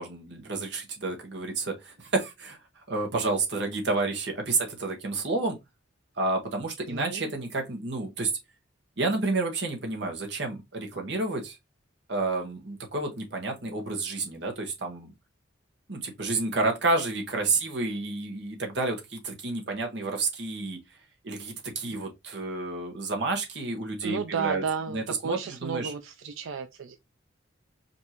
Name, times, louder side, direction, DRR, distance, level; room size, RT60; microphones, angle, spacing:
voice 1, 0.0-2.6 2.9-5.6 6.2-8.3 9.0-11.6 12.1-15.1 15.9-20.8 21.2-24.6 24.9-25.9, right 3 dB, 60° right, 1.1 m, -30 dB
voice 2, 6.9-7.3 24.0-27.0, right 6 dB, 80° right, 0.4 m, -33 dB
5.2 x 2.6 x 2.8 m
head